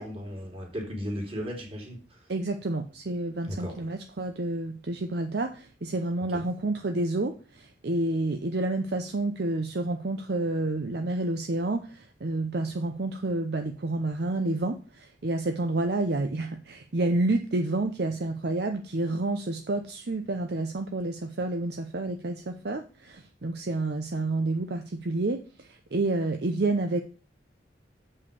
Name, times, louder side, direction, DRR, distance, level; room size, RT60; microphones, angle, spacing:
voice 1, 0.0-2.3 3.4-3.8 6.3-6.4, equal, 30° right, 1 dB, 3.0 m, -36 dB
voice 2, 2.3-27.0, right 2 dB, 60° right, 5 dB, 0.7 m, -29 dB
7.1 x 5.6 x 6.9 m, 0.38 s
head